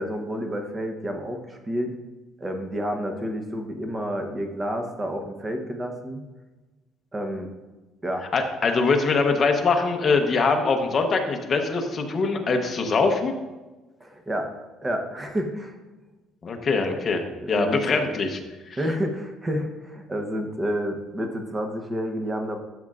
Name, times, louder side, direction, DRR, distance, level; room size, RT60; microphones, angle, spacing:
voice 1, 0.0-1.9 2.4-6.2 7.1-7.5 8.0-8.3 14.0-14.5 14.8-15.7 17.4-18.2 18.8-22.6, equal, 15° right, 4 dB, 0.9 m, -29 dB
voice 2, 8.3-13.3 16.4-18.4 18.7-18.8, left 4 dB, 30° left, 4 dB, 0.9 m, -23 dB
11.5 x 6.4 x 2.4 m, 1.2 s
cardioid pair, 155°, 0 cm